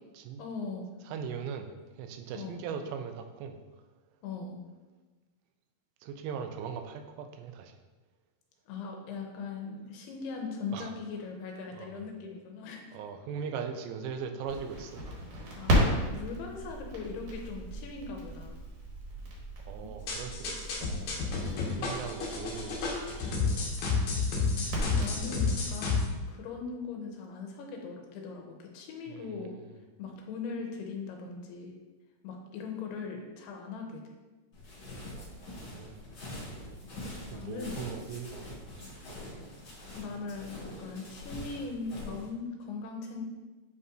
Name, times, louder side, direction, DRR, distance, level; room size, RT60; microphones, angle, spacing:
voice 1, 0.4-0.9 2.4-2.6 4.2-4.6 8.7-13.0 15.6-18.5 21.7-21.8 24.6-26.0 26.3-29.5 30.0-31.7 32.2-34.0 37.1-37.8 39.9-43.2, left 4 dB, 85° left, 2 dB, 2.5 m, -40 dB
voice 2, 1.1-3.6 6.0-7.7 10.7-10.9 11.7-12.0 12.9-15.1 19.6-23.9 29.1-29.7 35.2-36.1 37.1-39.3, right 6 dB, 90° right, 6 dB, 2.8 m, -40 dB
Crackle, 14.5-25.7, equal, 60° right, 2.3 m, -35 dB
sound 1, 20.1-26.0, left 4 dB, 65° left, 1.9 m, -30 dB
sound 2, 34.5-42.3, left 1 dB, 45° left, 1.6 m, -44 dB
8.1 x 5.4 x 2.5 m, 1.2 s
omnidirectional pair, 4.9 m